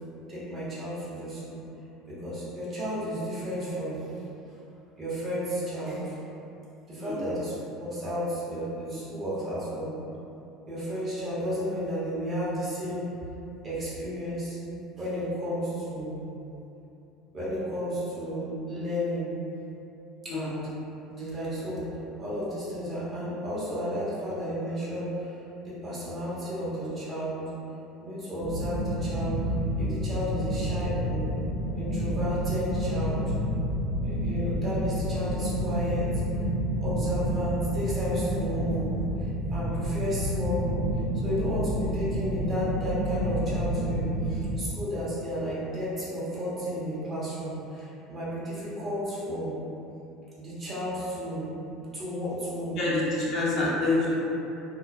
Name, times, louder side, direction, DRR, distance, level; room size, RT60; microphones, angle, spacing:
voice 1, 0.3-1.6 2.0-4.0 5.0-6.1 6.9-9.9 10.7-13.1 13.6-14.6 15.0-16.3 17.3-19.3 20.2-20.7 21.1-21.8 22.2-25.3 25.6-27.5 28.0-29.4 29.7-31.3 31.7-33.3 34.0-36.2 36.8-38.9 39.2-40.8 41.2-49.6 50.4-52.8, equal, 35° right, -9 dB, 1.1 m, -32 dB
sound 1, 28.4-44.6, equal, 80° right, 0.8 m, -29 dB
voice 2, 52.8-54.1, left 2 dB, 55° left, -7 dB, 0.6 m, -26 dB
2.8 x 2.1 x 2.5 m, 2.8 s
hypercardioid pair, 70°, 0 cm